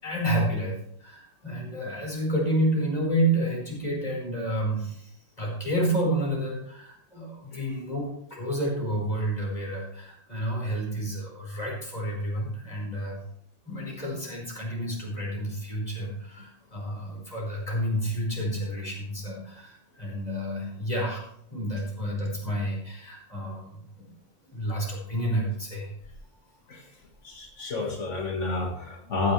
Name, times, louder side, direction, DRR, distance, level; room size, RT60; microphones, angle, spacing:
voice 1, 0.0-13.2 13.6-21.2 21.5-24.1 24.5-26.1, right 1 dB, 35° left, -3 dB, 5.0 m, -30 dB
voice 2, 27.2-29.3, left 3 dB, 85° left, -1 dB, 2.2 m, -30 dB
14.5 x 10.5 x 3.3 m, 0.69 s
omnidirectional pair, 1.2 m